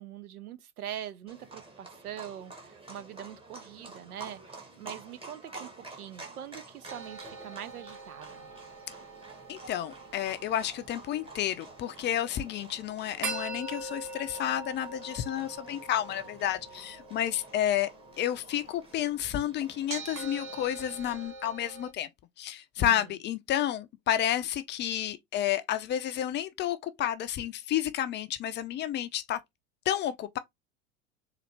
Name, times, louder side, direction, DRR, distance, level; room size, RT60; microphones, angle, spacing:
voice 1, 0.0-8.5 22.8-23.0, right 10 dB, 85° right, 0.7 m, -43 dB
Livestock farm animals working animals, 1.3-21.3, right 3 dB, 10° right, 1.1 m, -50 dB
sound 1, 6.9-21.9, right 3 dB, 40° right, 1.4 m, -44 dB
voice 2, 9.5-17.9 18.2-22.1 22.4-29.4 29.9-30.4, left 11 dB, 25° left, 0.4 m, -31 dB
4.1 x 2.5 x 3.2 m
hypercardioid pair, 95°, 43 cm